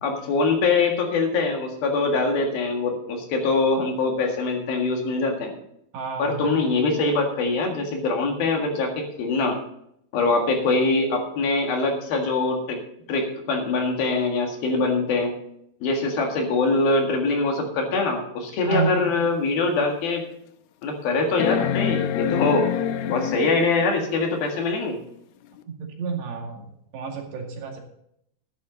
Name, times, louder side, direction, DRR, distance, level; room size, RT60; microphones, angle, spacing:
voice 1, 0.0-5.5 6.2-9.6 10.1-12.8 13.1-15.3 15.8-20.2 20.8-22.7 23.1-25.0, left 3 dB, 60° left, 2 dB, 3.5 m, -23 dB
voice 2, 5.9-6.5 18.6-19.0 25.8-26.6 26.9-27.8, right 6 dB, 75° right, 1 dB, 4.4 m, -30 dB
sound 1, 19.2-19.3 19.9-20.0 21.4-23.9 25.6-25.7, left 9 dB, 80° left, 2.4 m, -26 dB
12.5 x 11.5 x 4.0 m, 0.74 s
omnidirectional pair, 5.0 m